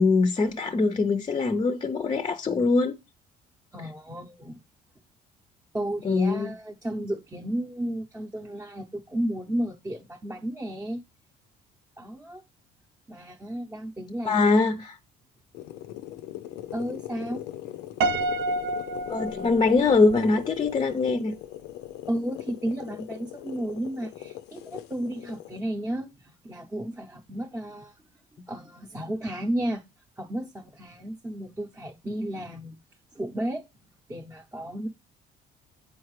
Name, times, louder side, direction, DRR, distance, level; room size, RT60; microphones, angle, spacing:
voice 1, 0.0-3.0 6.0-6.5 14.2-15.0 19.1-21.3, left 3 dB, 30° left, 0.5 m, -23 dB
voice 2, 3.7-4.6 5.7-11.0 12.0-12.4 13.1-14.4 16.7-17.5 22.1-28.0 28.5-29.8 30.2-32.8 33.1-33.6 34.1-34.9, right 1 dB, 15° right, 0.7 m, -33 dB
sound 1, 15.5-25.6, left 13 dB, 90° left, 0.5 m, -40 dB
Piano, 18.0-20.2, right 2 dB, 75° right, 0.7 m, -29 dB
8.0 x 4.7 x 3.1 m
cardioid pair, 110°, 17 cm